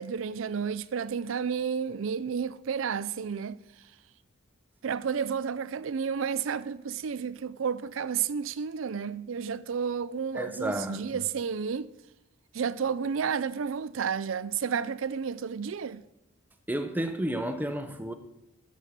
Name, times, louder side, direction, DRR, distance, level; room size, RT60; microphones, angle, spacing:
voice 1, 0.0-3.6 4.8-11.9 12.5-16.0, right 6 dB, 70° right, 0.4 m, -31 dB
voice 2, 10.3-11.2 16.7-18.1, right 1 dB, 10° right, 0.7 m, -32 dB
12.0 x 6.3 x 5.9 m
head